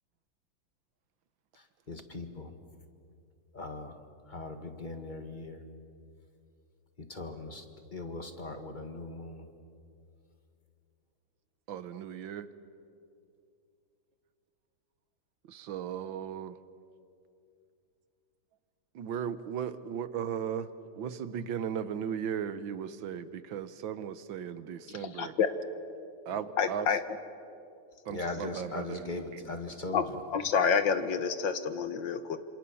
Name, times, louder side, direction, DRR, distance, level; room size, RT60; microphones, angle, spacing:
voice 1, 1.9-2.5 3.5-3.9 4.3-5.6 7.1-7.6 7.9-9.5 28.1-30.0, left 2 dB, 25° left, 6 dB, 1.7 m, -39 dB
voice 2, 11.7-12.5 15.5-16.6 19.0-20.7 21.0-25.3 26.3-26.9 28.1-29.6, right 8 dB, 75° right, 13 dB, 1.7 m, -36 dB
voice 3, 25.0-25.5 26.6-27.0 29.9-30.0 30.3-32.4, left 6 dB, 70° left, 11 dB, 1.8 m, -28 dB
27.0 x 27.0 x 7.0 m, 2.5 s
omnidirectional pair, 2.1 m